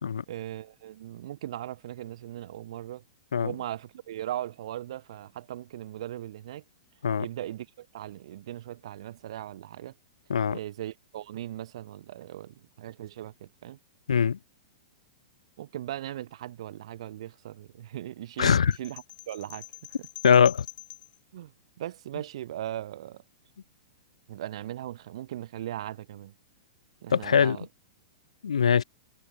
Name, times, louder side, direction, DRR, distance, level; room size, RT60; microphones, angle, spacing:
voice 1, 0.3-3.0 3.4-6.6 7.2-9.9 10.5-13.8 15.6-19.7 20.0-20.1 21.3-21.5 21.8-23.2 24.3-26.3 27.0-27.7, right 12 dB, 60° right, 1.9 m, -38 dB
voice 2, 14.1-14.4 18.4-18.7 20.2-20.7 27.1-27.6 28.4-28.8, left 7 dB, 75° left, 0.5 m, -22 dB
sound 1, 18.7-21.2, left 15 dB, 30° left, 1.7 m, -45 dB
figure-of-eight pair, 105°, 3 cm